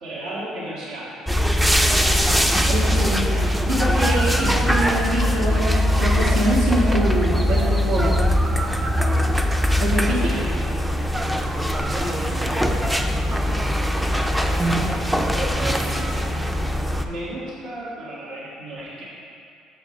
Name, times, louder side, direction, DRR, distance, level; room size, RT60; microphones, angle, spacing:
voice 1, 0.0-1.2 2.6-3.2 10.1-10.5 11.8-13.0 14.4-16.5 17.0-19.1, right 1 dB, 70° right, -7 dB, 1.9 m, -36 dB
sound 1, 1.3-17.0, equal, 5° right, 0.4 m, -21 dB
voice 2, 2.7-3.3 3.7-8.2 9.8-10.3, right 1 dB, 90° right, -7 dB, 1.9 m, -24 dB
6.4 x 5.1 x 6.5 m, 2.4 s
cardioid pair, 145°, 0 cm